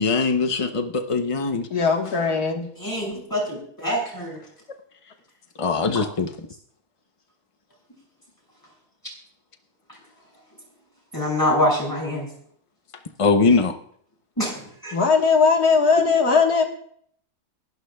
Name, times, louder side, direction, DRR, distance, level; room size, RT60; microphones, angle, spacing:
voice 1, 0.0-1.7 5.6-6.3 13.2-13.8, left 4 dB, 40° left, 6 dB, 0.5 m, -21 dB
voice 2, 1.7-2.7 14.9-16.6, left 5 dB, 75° left, 1 dB, 2.0 m, -19 dB
voice 3, 2.8-4.4 11.1-12.3 14.4-14.5 14.8-14.9, left 1 dB, 10° left, -2 dB, 6.3 m, -24 dB
29.0 x 11.5 x 2.3 m, 0.63 s
omnidirectional pair, 1.6 m